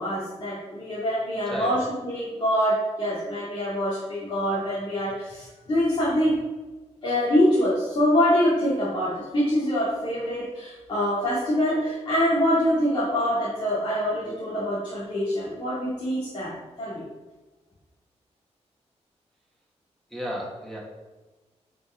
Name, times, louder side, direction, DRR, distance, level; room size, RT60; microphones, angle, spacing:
voice 1, 0.0-6.4 7.0-16.5 16.8-17.0, equal, 45° left, -10 dB, 2.7 m, -25 dB
voice 2, 1.5-1.8 20.1-20.8, equal, ahead, -3 dB, 2.6 m, -33 dB
8.6 x 5.5 x 5.0 m, 1.2 s
wide cardioid pair, 130°, 12 cm